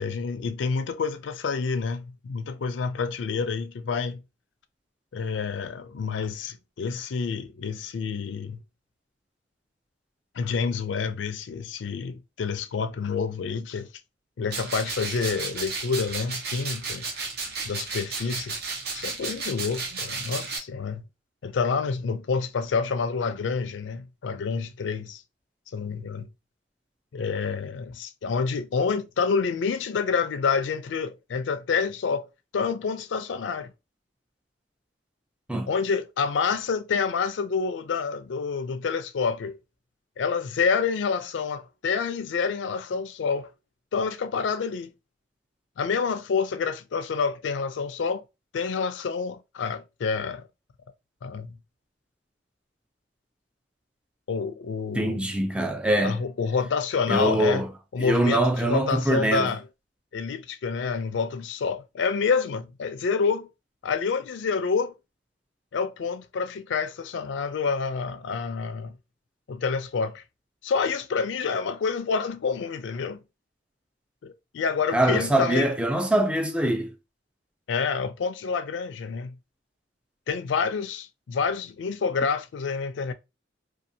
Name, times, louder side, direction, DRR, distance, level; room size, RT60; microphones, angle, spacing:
voice 1, 0.0-4.2 5.1-8.6 10.3-13.9 14.4-17.1 17.6-18.6 18.9-21.0 21.4-25.2 25.7-26.3 27.1-32.3 32.5-33.7 35.7-39.5 40.2-43.5 43.9-44.9 45.8-48.2 48.5-50.4 51.2-51.6 54.3-55.2 56.0-57.7 57.9-59.6 60.1-63.5 63.8-64.9 65.7-68.9 69.5-70.2 70.6-73.2 74.2-75.7 77.7-79.4 80.3-83.1, left 5 dB, 75° left, 0.4 m, -28 dB
sound 1, 14.5-20.6, right 4 dB, 55° right, 0.7 m, -33 dB
voice 2, 54.9-56.2 57.1-57.7 58.0-59.5 74.9-76.9, right 1 dB, 5° right, 0.3 m, -23 dB
2.7 x 2.4 x 2.6 m
head